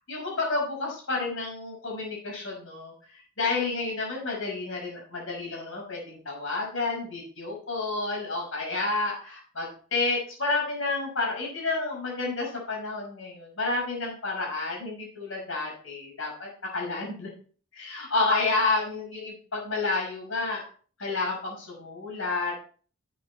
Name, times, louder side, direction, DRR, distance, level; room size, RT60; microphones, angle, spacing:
voice 1, 0.1-17.3 17.7-20.6 21.0-22.5, left 3 dB, 70° left, -2 dB, 5.9 m, -30 dB
11.5 x 8.5 x 4.4 m, 0.43 s
head